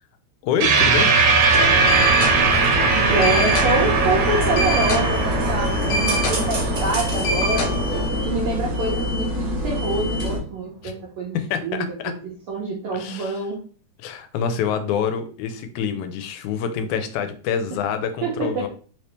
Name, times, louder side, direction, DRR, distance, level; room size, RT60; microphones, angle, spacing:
voice 1, 0.4-1.1 10.8-10.9 11.3-12.1 12.9-13.4 14.0-18.7, left 7 dB, 85° left, 8 dB, 2.0 m, -26 dB
sound 1, 0.6-9.3, right 4 dB, 90° right, 2.1 m, -21 dB
sound 2, 1.5-8.1, equal, 65° left, 1.6 m, -26 dB
sound 3, 1.6-10.4, left 1 dB, 55° right, 1.0 m, -26 dB
voice 2, 2.9-7.7 8.2-11.4 11.6-12.1 12.5-13.6 18.2-18.7, right 2 dB, 70° right, -2 dB, 1.3 m, -26 dB
4.7 x 2.9 x 3.3 m, 0.42 s
omnidirectional pair, 3.3 m